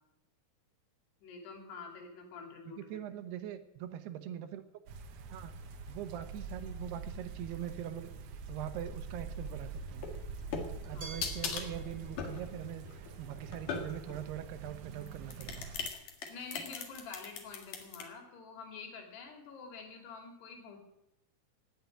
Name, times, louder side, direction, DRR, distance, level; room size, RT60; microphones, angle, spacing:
voice 1, 1.2-2.8 10.9-11.2 16.3-20.8, left 4 dB, 85° left, 2 dB, 4.9 m, -47 dB
voice 2, 2.7-4.6 5.3-5.6 5.9-8.1 8.5-10.1 10.8-15.6, right 11 dB, 85° right, 10 dB, 3.1 m, -42 dB
sound 1, 4.9-15.9, right 4 dB, 65° right, 2.1 m, -45 dB
sound 2, 9.9-14.2 15.0-18.0, left 5 dB, 60° left, 3.0 m, -40 dB
Glass, 11.0-13.9, right 4 dB, 30° right, 2.4 m, -53 dB
17.5 x 7.2 x 9.3 m, 0.82 s
omnidirectional pair, 4.6 m